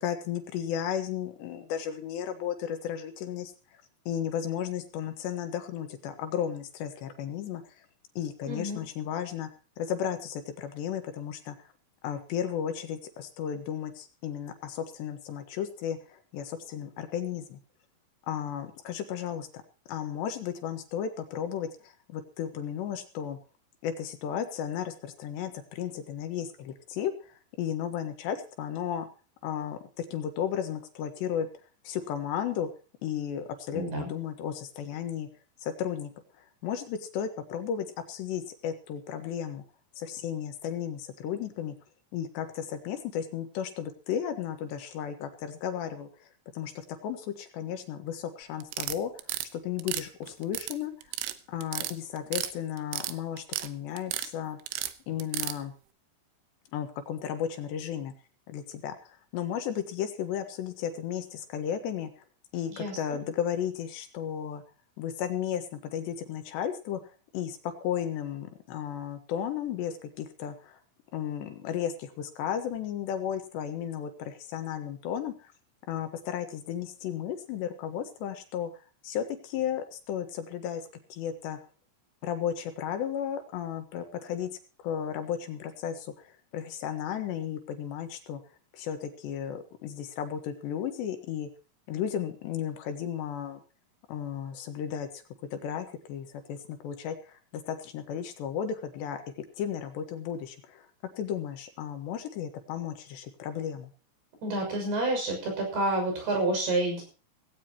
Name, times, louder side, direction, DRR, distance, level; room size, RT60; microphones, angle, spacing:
voice 1, 0.0-7.6 8.2-9.5 9.8-11.6 12.0-17.6 18.3-19.5 19.9-23.4 23.8-29.1 29.4-31.5 31.8-32.7 33.0-35.3 35.6-36.1 36.6-39.6 40.0-41.7 42.1-49.1 49.5-50.9 51.5-54.6 55.1-55.7 56.7-58.1 58.5-62.2 62.5-64.6 65.0-67.0 67.3-70.8 71.1-75.5 75.9-78.7 79.0-80.8 81.1-81.6 82.2-84.5 84.8-88.4 88.7-91.5 91.9-93.6 94.1-95.2 95.5-99.2 99.6-100.9 101.2-103.9, left 9 dB, 70° left, 7 dB, 3.4 m, -34 dB
voice 2, 8.5-8.8 33.7-34.1 62.7-63.2 104.4-107.0, right 2 dB, 55° right, 2 dB, 8.3 m, -29 dB
sound 1, 48.6-49.5 49.8-50.7 51.0-51.3 51.6-52.5 52.8-53.7 54.0-54.3 54.7-55.6, right 14 dB, 90° right, 3.4 m, -33 dB
17.5 x 17.0 x 3.0 m, 0.37 s
omnidirectional pair, 5.4 m